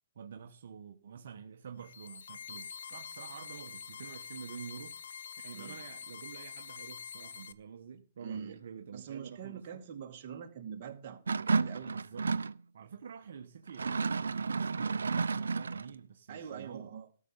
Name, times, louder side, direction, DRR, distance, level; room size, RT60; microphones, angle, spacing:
voice 1, 0.1-5.0 5.4-9.8 11.9-12.4 12.7-16.9, right 7 dB, 65° right, 1.1 m, -48 dB
sound 1, 1.8-7.5, left 7 dB, 70° left, 1.0 m, -46 dB
voice 2, 8.2-8.6 8.9-11.9 16.3-17.1, right 8 dB, 40° right, 2.4 m, -44 dB
sound 2, 11.3-12.6 13.7-15.9, right 4 dB, 85° right, 0.7 m, -31 dB
13.5 x 6.5 x 7.2 m
hypercardioid pair, 145°, 0 cm